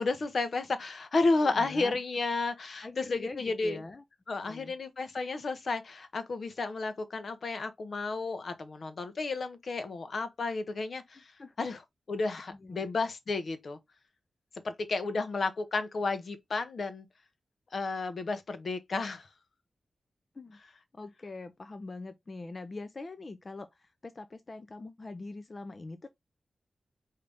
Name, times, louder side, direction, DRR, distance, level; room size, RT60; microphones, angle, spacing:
voice 1, 0.0-3.8 4.3-11.3 11.6-11.8 12.1-13.8 14.6-17.1 17.7-19.3, left 3 dB, 60° left, 0.8 m, -32 dB
voice 2, 1.4-2.0 2.8-4.0 4.4-4.8 11.2-11.7 12.5-12.9 20.3-20.6 20.9-26.1, left 3 dB, 40° left, 0.5 m, -43 dB
4.9 x 2.8 x 3.4 m
wide cardioid pair, 80°, 0 cm